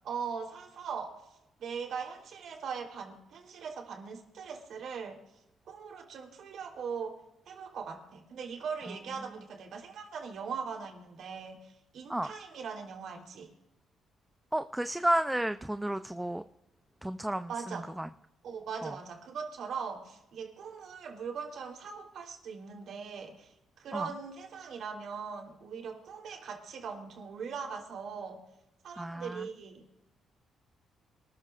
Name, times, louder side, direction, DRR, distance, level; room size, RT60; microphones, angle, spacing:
voice 1, 0.0-1.2 1.6-5.2 5.7-7.2 7.5-13.5 17.5-17.9 18.4-28.4 28.8-29.8, right 6 dB, 70° right, 2 dB, 3.5 m, -40 dB
voice 2, 14.5-16.4 17.0-18.1 18.8-18.9 23.9-24.1 29.0-29.5, right 1 dB, 5° right, 10 dB, 0.5 m, -32 dB
27.0 x 14.0 x 2.5 m, 0.91 s
cardioid pair, 90°, 0 cm